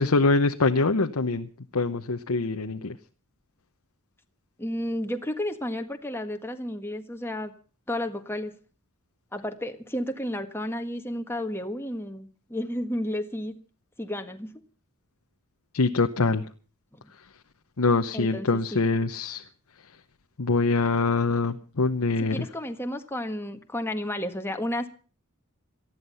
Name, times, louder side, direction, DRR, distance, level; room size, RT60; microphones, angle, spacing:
voice 1, 0.0-3.0 15.7-16.4 17.8-19.4 20.4-22.5, left 3 dB, 75° left, 5 dB, 0.9 m, -24 dB
voice 2, 4.6-7.5 7.9-8.5 9.3-13.6 14.0-14.5 16.9-17.1 18.1-18.8 22.2-24.9, left 1 dB, 10° left, 6 dB, 1.5 m, -32 dB
19.0 x 14.0 x 5.6 m, 0.39 s
head